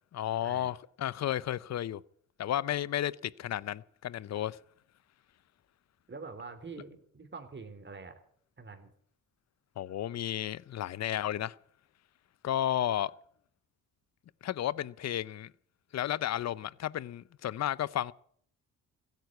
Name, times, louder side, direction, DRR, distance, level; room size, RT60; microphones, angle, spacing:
voice 1, 0.1-2.0 2.4-4.6 9.8-11.5 12.4-13.1 14.4-15.5 15.9-18.1, left 11 dB, 50° left, 0.6 m, -33 dB
voice 2, 6.1-8.2 8.6-8.9, right 4 dB, 30° right, 3.2 m, -45 dB
16.0 x 9.3 x 9.3 m
cardioid pair, 80°, 35 cm